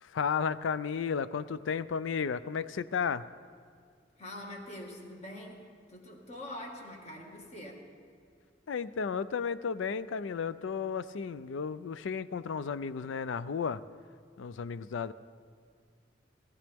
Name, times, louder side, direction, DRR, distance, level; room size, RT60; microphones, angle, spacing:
voice 1, 0.0-3.2 8.7-13.8 14.4-15.1, left 6 dB, 80° left, 15 dB, 0.4 m, -33 dB
voice 2, 4.2-5.6 5.9-7.8, left 1 dB, 35° left, 0 dB, 1.8 m, -44 dB
18.5 x 14.5 x 3.5 m, 2.2 s
head